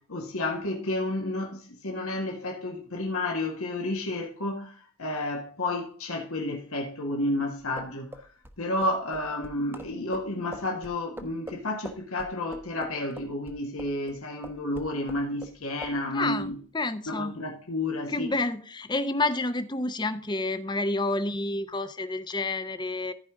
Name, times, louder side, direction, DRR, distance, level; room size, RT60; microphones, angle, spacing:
voice 1, 0.1-8.1 8.6-16.6 17.1-18.3, left 1 dB, 80° left, 1.6 m, -31 dB
sound 1, 7.6-14.1 14.4-15.6 15.8-16.0, equal, 10° right, 0.9 m, -43 dB
voice 2, 16.1-17.3 18.1-23.1, left 2 dB, 20° left, 0.6 m, -29 dB
14.5 x 4.9 x 3.7 m
head